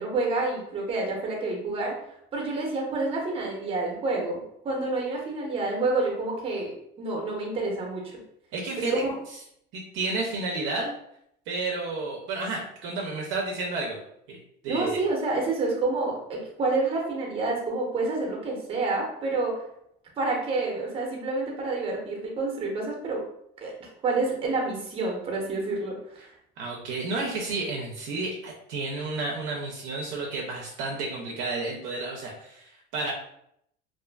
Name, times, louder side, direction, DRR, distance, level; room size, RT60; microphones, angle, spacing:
voice 1, 0.0-2.0 2.3-8.1 8.8-9.0 14.7-19.5 20.2-23.2 23.6-23.7 24.0-26.0, right 3 dB, 25° right, 0 dB, 0.7 m, -28 dB
voice 2, 8.5-9.0 9.7-10.9 11.5-14.0 14.3-14.4 14.6-15.0 26.6-33.1, right 3 dB, 65° right, -1 dB, 0.5 m, -31 dB
2.4 x 2.3 x 2.2 m, 0.73 s
cardioid pair, 135°, 21 cm